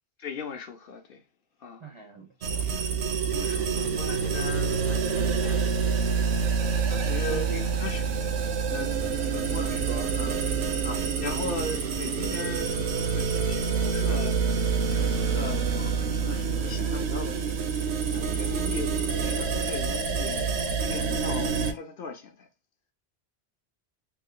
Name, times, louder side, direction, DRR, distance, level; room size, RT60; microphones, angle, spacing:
voice 1, 0.2-1.2 1.6-1.9 2.6-2.8 3.2-5.8 6.1-6.4 6.9-7.5 7.8-8.0 8.7-8.9 9.3-9.8 10.1-10.4 10.8-22.5, left 4 dB, 60° left, 0.7 m, -38 dB
voice 2, 1.8-2.6 7.3-7.7 9.2-9.4 9.7-10.1, right 4 dB, 40° right, 0.4 m, -40 dB
sound 1, 2.4-21.7, right 6 dB, 75° right, 0.8 m, -27 dB
3.0 x 2.0 x 3.6 m
omnidirectional pair, 1.1 m